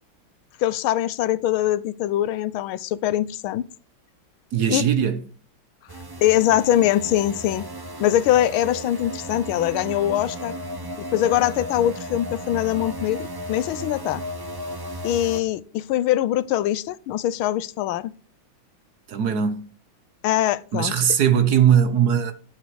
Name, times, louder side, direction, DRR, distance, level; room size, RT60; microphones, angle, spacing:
voice 1, 0.6-3.6 4.7-4.8 6.2-7.7 8.0-10.5 11.1-14.2 15.0-18.1 20.2-20.9, left 12 dB, 90° left, 1.5 m, -22 dB
voice 2, 4.5-5.2 19.1-19.6 20.7-22.3, right 8 dB, 60° right, 1.3 m, -19 dB
sound 1, 5.9-15.4, equal, 35° right, 0.3 m, -34 dB
11.5 x 8.6 x 4.7 m
omnidirectional pair, 2.2 m